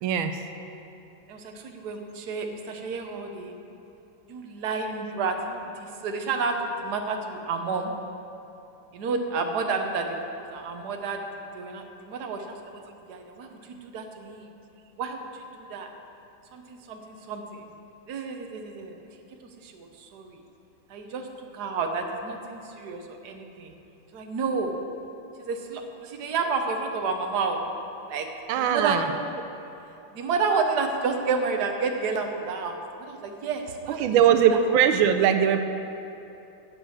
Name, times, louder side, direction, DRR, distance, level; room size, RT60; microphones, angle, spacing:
voice 1, 0.0-0.4 28.5-29.1 34.0-35.6, right 8 dB, 90° right, 8 dB, 1.4 m, -20 dB
voice 2, 1.3-3.6 4.3-7.9 8.9-10.2 10.5-11.2 11.5-12.6 12.9-14.5 15.0-15.9 16.5-17.6 18.1-19.0 19.4-20.4 20.9-21.3 21.5-23.7 24.1-24.7 25.4-27.6 28.1-28.3 28.5-29.4 30.1-34.0 34.5-34.6, right 4 dB, 55° right, 4 dB, 1.4 m, -30 dB
11.0 x 8.2 x 7.2 m, 2.8 s
omnidirectional pair, 2.2 m